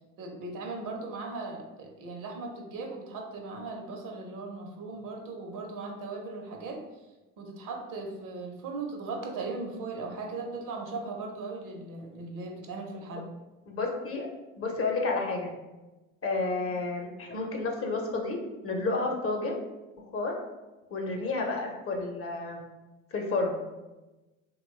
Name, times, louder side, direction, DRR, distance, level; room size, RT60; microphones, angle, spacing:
voice 1, 0.2-6.8 7.4-13.3, right 3 dB, 60° right, 1 dB, 0.8 m, -38 dB
voice 2, 13.7-14.3 14.6-15.5 16.2-18.4 18.6-19.5 20.1-20.3 20.9-22.6 23.1-23.6, left 3 dB, 40° left, 1 dB, 0.7 m, -30 dB
2.9 x 2.3 x 3.1 m, 1.1 s
hypercardioid pair, 65°, 36 cm